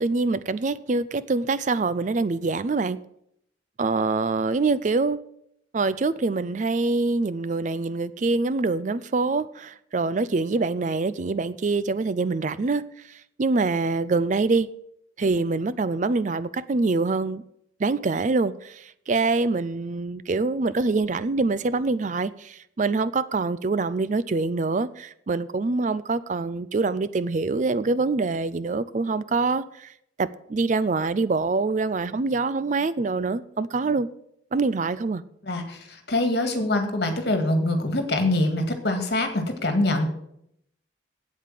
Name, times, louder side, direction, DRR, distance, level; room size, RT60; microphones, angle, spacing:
voice 1, 0.0-3.0 3.8-5.2 5.7-14.7 15.2-17.4 17.8-29.9 30.2-34.1 34.5-35.2, right 3 dB, 40° right, 0.4 m, -25 dB
voice 2, 35.4-40.1, left 2 dB, 55° left, 2.0 m, -24 dB
8.6 x 8.4 x 7.4 m
head